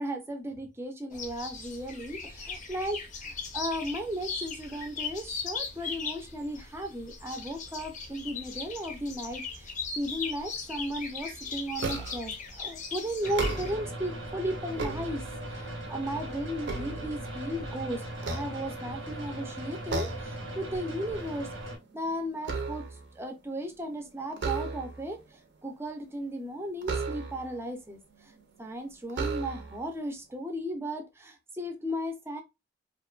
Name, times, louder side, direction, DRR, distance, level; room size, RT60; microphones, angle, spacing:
voice 1, 0.0-15.2 15.5-21.5 21.9-22.9 23.1-25.2 25.6-28.3 28.6-32.4, equal, 15° right, 0.4 m, -35 dB
sound 1, 1.1-13.7, left 5 dB, 40° left, 0.5 m, -39 dB
sound 2, 11.8-12.4 13.2-14.0 14.5-15.6 16.1-17.6 18.2-19.1 19.9-20.4 20.8-21.0 21.4-23.1 24.3-25.1 26.8-27.6 28.4-28.5 29.1-29.9, right 3 dB, 65° right, 0.5 m, -35 dB
sound 3, 13.2-21.8, right 1 dB, 90° right, 0.9 m, -39 dB
2.5 x 2.2 x 2.3 m
head